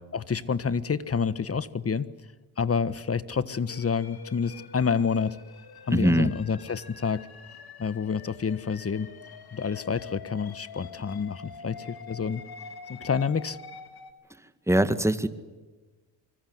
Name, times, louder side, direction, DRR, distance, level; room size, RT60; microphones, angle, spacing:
voice 1, 0.1-2.1 2.6-5.4 5.9-7.3 7.8-9.1 9.5-12.4 12.9-13.6, left 6 dB, 30° left, 16 dB, 1.5 m, -28 dB
sound 1, 3.7-14.1, left 6 dB, 55° left, 3.3 m, -46 dB
voice 2, 5.9-6.3 14.7-15.3, right 1 dB, 5° right, 11 dB, 2.0 m, -22 dB
25.0 x 24.5 x 8.0 m, 1.3 s
supercardioid pair, 65°, 45 cm